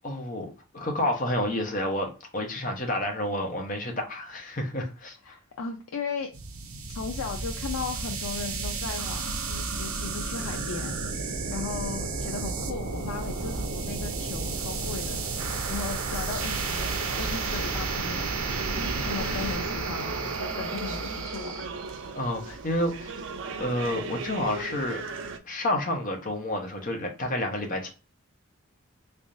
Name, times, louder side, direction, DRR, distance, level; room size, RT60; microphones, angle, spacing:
voice 1, 0.0-5.2 22.1-23.1 23.6-25.0 25.4-27.9, left 1 dB, 40° left, 0.9 m, -29 dB
voice 2, 5.2-6.3 6.9-15.2 15.5-16.9 17.2-18.5 19.0-21.7, left 5 dB, 85° left, 0.5 m, -37 dB
sound 1, 6.3-21.6, right 4 dB, 90° right, 0.7 m, -32 dB
sound 2, 16.8-25.4, right 3 dB, 60° right, 0.5 m, -38 dB
3.5 x 3.3 x 2.6 m
head